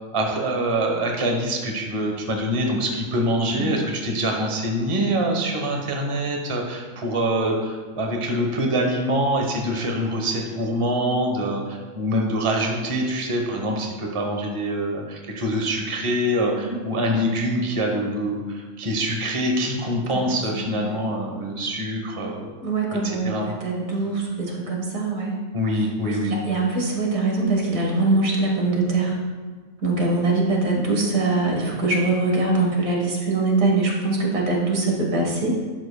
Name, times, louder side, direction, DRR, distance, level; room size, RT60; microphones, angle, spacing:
voice 1, 0.1-22.5 23.0-23.5 25.5-26.4, equal, 25° right, 1 dB, 1.0 m, -25 dB
voice 2, 16.4-16.8 20.1-21.0 22.6-25.3 26.0-29.1 29.8-35.6, right 3 dB, 80° right, -1 dB, 1.9 m, -23 dB
11.5 x 7.6 x 2.3 m, 1.4 s
omnidirectional pair, 1.4 m